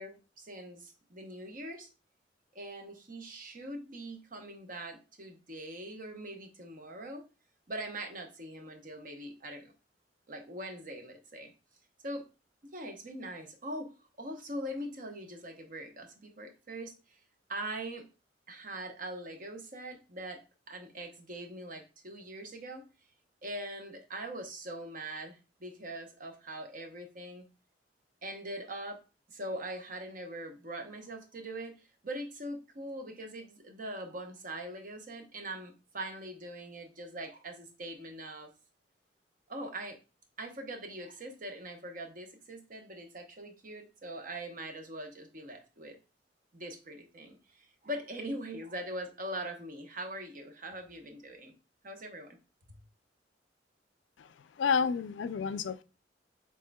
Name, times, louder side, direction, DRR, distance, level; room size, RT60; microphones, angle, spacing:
voice 1, 0.0-1.9 2.5-7.2 7.7-9.7 10.3-11.5 12.0-12.2 12.7-13.9 14.2-17.2 17.5-18.1 18.5-20.4 20.7-22.8 23.4-27.5 28.2-29.0 29.3-38.5 39.5-40.0 40.4-46.0 46.5-51.5 51.8-52.4, right 1 dB, 50° right, 0.9 m, -42 dB
voice 2, 54.6-55.8, left 6 dB, 90° left, 0.4 m, -29 dB
6.4 x 3.7 x 2.2 m
head